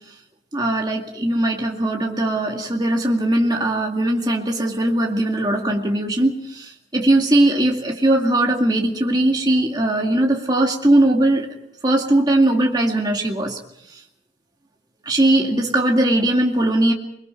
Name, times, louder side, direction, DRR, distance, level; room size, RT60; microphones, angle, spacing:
voice 1, 0.5-11.5 11.8-13.6 15.1-16.9, right 1 dB, 25° right, 0 dB, 2.2 m, -19 dB
30.0 x 22.0 x 4.5 m, 0.75 s
head